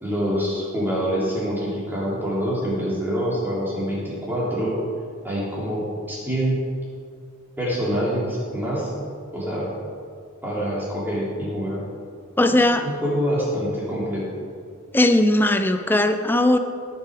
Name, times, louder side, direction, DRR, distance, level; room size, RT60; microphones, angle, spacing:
voice 1, 0.0-4.8 5.2-6.6 7.6-8.9 9.3-9.7 10.4-11.8 12.5-12.6 12.8-14.2, equal, 10° right, -6 dB, 3.0 m, -25 dB
voice 2, 12.4-12.9 14.9-16.6, left 1 dB, 10° left, 8 dB, 0.5 m, -18 dB
17.0 x 7.0 x 5.0 m, 2.2 s
head